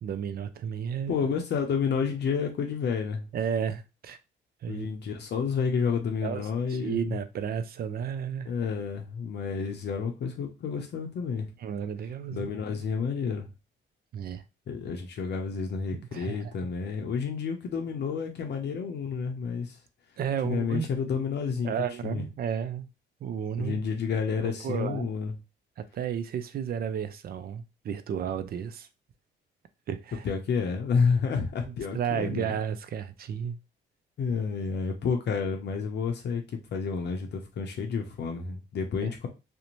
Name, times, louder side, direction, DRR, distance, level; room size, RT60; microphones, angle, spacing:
voice 1, 0.0-1.2 3.3-4.2 4.6-4.9 6.2-8.5 11.6-12.5 14.1-14.4 15.9-16.6 20.2-20.9 21.6-22.9 23.2-23.8 24.4-25.1 25.8-28.9 29.9-30.3 31.7-33.6 39.0-39.1, right 8 dB, 50° right, 0.4 m, -33 dB
voice 2, 1.1-3.3 4.7-7.2 8.5-11.5 12.3-13.5 14.7-19.8 20.4-21.7 22.0-22.2 23.6-25.3 30.2-32.5 34.2-36.4 36.7-39.3, left 5 dB, 60° left, 0.6 m, -30 dB
2.5 x 2.1 x 3.0 m
cardioid pair, 90°, 20 cm